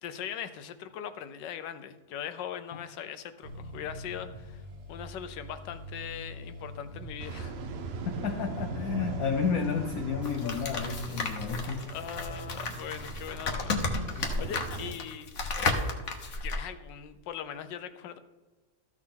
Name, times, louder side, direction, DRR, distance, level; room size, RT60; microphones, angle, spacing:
voice 1, 0.0-7.5 11.9-13.8 14.0-15.3 16.4-18.2, left 9 dB, 90° left, 1.4 m, -40 dB
Accelerating revving vroom, 3.4-13.8, equal, 80° right, 2.2 m, -43 dB
sound 1, 7.2-14.9, right 5 dB, 60° right, 0.6 m, -41 dB
voice 2, 8.1-11.9 14.1-14.5, left 6 dB, 65° left, 1.1 m, -32 dB
sound 2, 10.2-16.6, left 3 dB, 50° left, 1.3 m, -33 dB
14.0 x 6.4 x 3.8 m
omnidirectional pair, 1.9 m